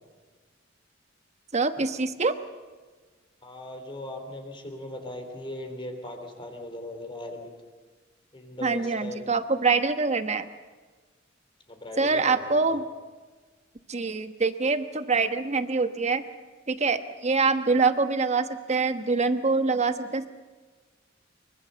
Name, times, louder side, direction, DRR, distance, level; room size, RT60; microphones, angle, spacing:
voice 1, 1.5-2.4 8.6-10.5 12.0-12.8 13.9-16.2 16.7-20.3, right 4 dB, 35° right, 10 dB, 1.1 m, -25 dB
voice 2, 3.4-7.5 8.3-9.4 11.7-12.8, left 1 dB, 25° left, 5 dB, 3.4 m, -39 dB
24.5 x 23.5 x 6.8 m, 1.3 s
head